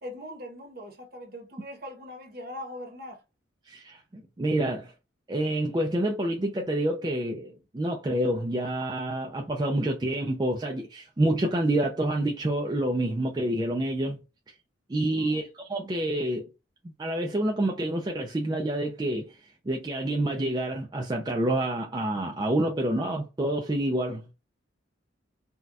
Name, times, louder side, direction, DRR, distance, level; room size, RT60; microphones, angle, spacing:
voice 1, 0.0-3.2 15.1-15.5, left 1 dB, 50° right, 0.9 m, -41 dB
voice 2, 3.7-4.9 5.3-14.2 14.9-16.5 16.8-24.3, right 1 dB, 20° right, 0.3 m, -28 dB
4.0 x 2.2 x 2.3 m
head